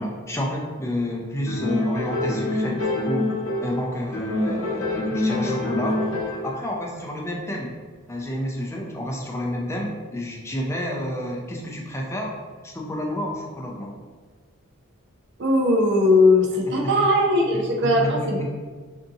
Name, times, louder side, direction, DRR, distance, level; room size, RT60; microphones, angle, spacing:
voice 1, 0.0-3.3 3.6-6.0 6.4-7.7 8.1-12.3 12.6-14.0 17.0-17.1 17.5-18.5, left 1 dB, 15° left, -1 dB, 0.4 m, -29 dB
sound 1, 1.5-3.8 4.1-6.6, left 2 dB, 70° left, 0.7 m, -26 dB
voice 2, 15.4-18.5, left 2 dB, 55° right, 0 dB, 0.5 m, -19 dB
3.6 x 2.7 x 2.6 m, 1.5 s
head